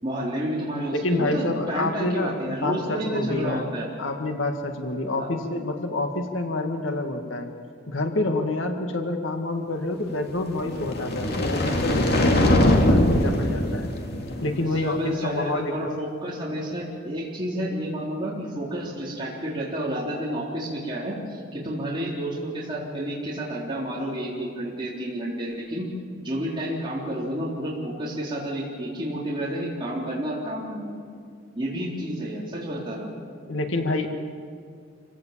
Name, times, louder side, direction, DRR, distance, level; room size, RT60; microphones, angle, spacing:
voice 1, 0.0-3.9 5.1-5.3 14.6-25.9 26.2-31.0 31.6-33.1, equal, 25° right, -6 dB, 3.8 m, -30 dB
voice 2, 0.9-3.7 4.0-7.5 7.9-13.9 14.4-16.0 33.5-34.1, left 2 dB, 85° left, 4 dB, 1.9 m, -28 dB
sound 1, 10.5-14.8, left 1 dB, 55° left, 2.3 m, -22 dB
27.0 x 17.0 x 7.4 m, 2.2 s
head